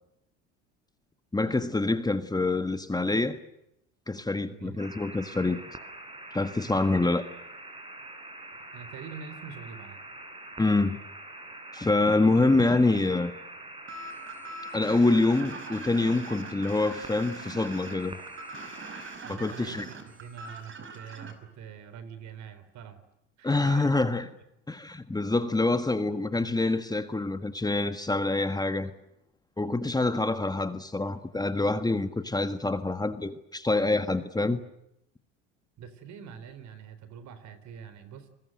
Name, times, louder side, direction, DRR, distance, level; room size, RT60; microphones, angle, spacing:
voice 1, 1.3-3.4 4.1-5.6 6.3-7.2 10.6-11.0 11.7-13.3 14.7-18.2 19.3-19.9 23.4-24.3 24.7-28.9 29.6-34.6, left 2 dB, 10° left, 1.6 m, -26 dB
voice 2, 4.5-4.8 6.7-6.9 8.6-10.0 19.2-23.0 23.4-23.9 35.8-38.3, right 7 dB, 60° right, 3.9 m, -44 dB
sound 1, 4.8-19.2, right 2 dB, 15° right, 6.0 m, -44 dB
sound 2, 13.9-21.3, right 3 dB, 35° right, 5.4 m, -42 dB
29.5 x 21.0 x 7.9 m
supercardioid pair, 80°, 32 cm